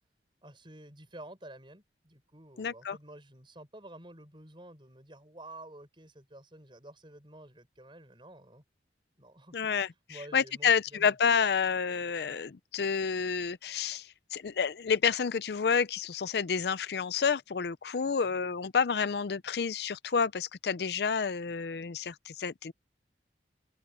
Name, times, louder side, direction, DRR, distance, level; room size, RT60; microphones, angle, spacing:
voice 1, 0.4-8.6 9.2-11.2 18.0-18.4, right 1 dB, 25° right, 5.1 m, -51 dB
voice 2, 2.6-3.0 9.5-9.9 10.3-22.7, left 6 dB, 60° left, 0.5 m, -29 dB
open air
head